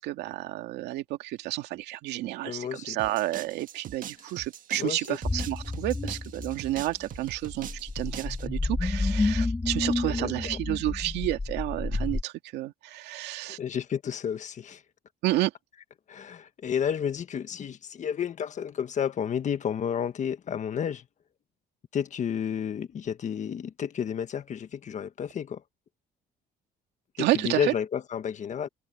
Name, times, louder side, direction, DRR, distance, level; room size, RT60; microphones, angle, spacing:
voice 1, 0.0-13.6 15.2-15.5 27.2-27.7, right 16 dB, 85° right, 2.3 m, -30 dB
voice 2, 2.4-3.0 4.8-5.2 10.1-10.6 13.6-14.8 16.1-21.0 21.9-25.6 27.2-28.7, left 8 dB, 45° left, 1.6 m, -31 dB
sound 1, 3.0-8.5, right 10 dB, 55° right, 1.6 m, -43 dB
sound 2, 5.2-12.2, left 3 dB, 15° left, 2.1 m, -30 dB
cardioid pair, 110°, 17 cm